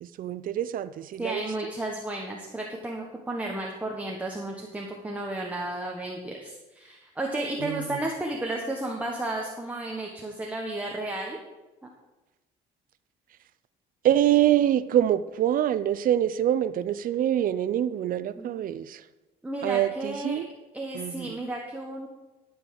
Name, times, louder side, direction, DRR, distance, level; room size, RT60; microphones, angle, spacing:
voice 1, 0.0-1.5 7.6-8.0 14.0-19.0 19.6-20.5 20.9-21.4, right 11 dB, 55° right, 15 dB, 0.6 m, -25 dB
voice 2, 1.2-11.4 18.4-18.6 19.4-20.4 20.7-22.1, right 1 dB, 10° right, 0 dB, 1.3 m, -33 dB
13.0 x 5.5 x 6.5 m, 1.1 s
cardioid pair, 110°, 17 cm